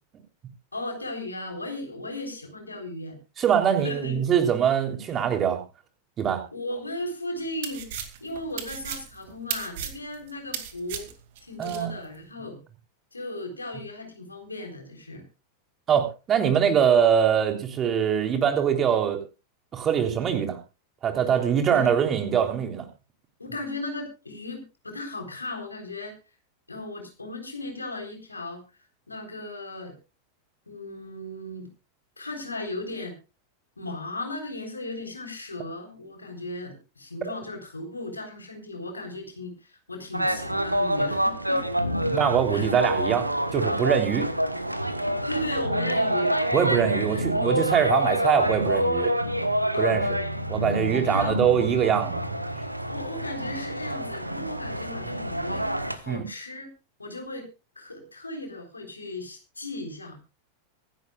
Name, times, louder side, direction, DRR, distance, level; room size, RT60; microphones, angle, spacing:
voice 1, 0.7-3.2 3.8-4.2 6.5-7.9 8.2-11.1 11.4-12.6 13.1-15.2 21.3-21.9 23.4-26.2 26.7-28.6 29.1-29.9 30.7-31.7 32.2-33.1 33.8-41.6 42.5-42.6 45.3-46.4 46.9-47.2 49.7-50.0 50.5-50.6 51.0-51.4 52.9-56.7 57.0-57.5 57.8-60.2, left 2 dB, 80° left, 4 dB, 3.9 m, -36 dB
voice 2, 3.4-5.6 6.2-6.4 11.6-11.9 15.9-19.2 19.7-20.6 21.0-22.9 42.1-44.2 46.5-49.1 49.8-50.2 50.5-52.2 56.1-56.2, right 8 dB, 25° right, 6 dB, 3.3 m, -23 dB
sound 1, 7.4-11.8, right 9 dB, 50° right, 2.3 m, -35 dB
sound 2, 40.1-56.0, equal, 85° right, 1.2 m, -27 dB
24.5 x 11.5 x 2.4 m, 0.29 s
figure-of-eight pair, 90°, 0 cm